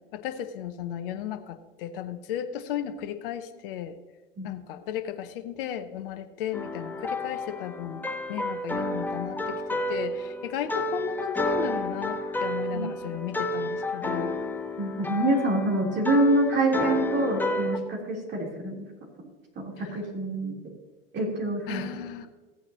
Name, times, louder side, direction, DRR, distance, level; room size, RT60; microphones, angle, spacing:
voice 1, 0.1-4.0 4.4-8.0 8.3-14.4 21.7-22.3, left 10 dB, 65° left, 10 dB, 0.8 m, -35 dB
sound 1, 6.5-17.8, left 1 dB, 5° left, 0.9 m, -31 dB
voice 2, 12.7-13.1 14.8-18.8 19.6-20.6 21.1-22.0, right 1 dB, 35° right, -1 dB, 3.5 m, -26 dB
15.0 x 8.8 x 2.9 m, 1.2 s
hypercardioid pair, 80°, 30 cm